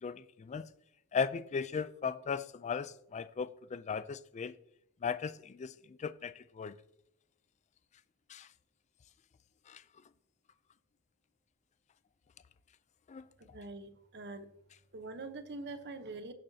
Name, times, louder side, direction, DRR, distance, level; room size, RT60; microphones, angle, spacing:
voice 1, 0.0-0.7 1.1-4.5 5.0-5.7 6.0-6.8 8.3-8.5 9.7-9.8 13.1-13.2, left 6 dB, 30° left, 0.3 m, -37 dB
voice 2, 13.4-14.5 14.9-16.3, right 3 dB, 50° right, 0.9 m, -44 dB
17.0 x 6.9 x 2.8 m
head